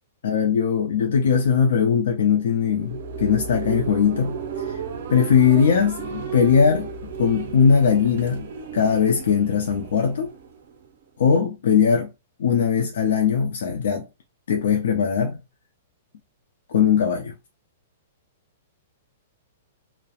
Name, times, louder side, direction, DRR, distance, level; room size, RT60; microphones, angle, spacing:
voice 1, 0.2-4.8 5.1-6.9 7.2-8.5 8.7-10.3 11.2-12.1 12.4-14.1 14.5-15.4 16.7-17.3, left 7 dB, 70° left, 0.4 m, -20 dB
sound 1, 2.4-11.0, right 6 dB, 60° right, 0.5 m, -34 dB
2.8 x 2.0 x 2.3 m
hypercardioid pair, 170°, 0 cm